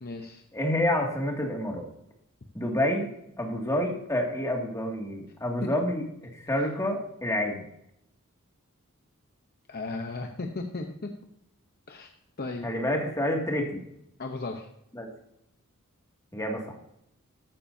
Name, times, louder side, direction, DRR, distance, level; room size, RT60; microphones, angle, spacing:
voice 1, 0.0-0.4 9.7-11.1 11.9-12.1 12.4-12.7 14.2-14.7, left 3 dB, 45° left, 3 dB, 0.9 m, -35 dB
voice 2, 0.5-1.9 2.5-3.1 3.4-6.0 6.4-7.6 12.6-13.8 14.9-15.1 16.3-16.8, left 1 dB, 15° left, 0 dB, 2.3 m, -28 dB
14.5 x 12.0 x 2.8 m, 0.77 s
head